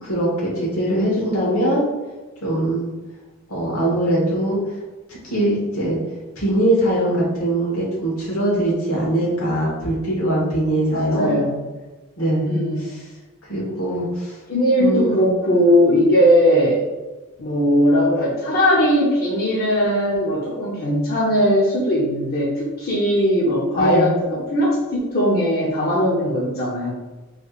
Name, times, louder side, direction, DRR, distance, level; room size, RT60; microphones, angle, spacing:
voice 1, 0.0-1.9 2.4-2.9 3.5-4.6 5.1-6.0 6.4-11.4 12.2-12.5 13.5-14.4 14.8-15.2 23.7-24.1, right 1 dB, 80° left, -4 dB, 1.4 m, -21 dB
voice 2, 10.9-11.6 12.5-12.9 14.5-16.8 17.4-26.9, equal, 45° left, -5 dB, 0.6 m, -19 dB
4.7 x 3.2 x 2.4 m, 1.2 s
head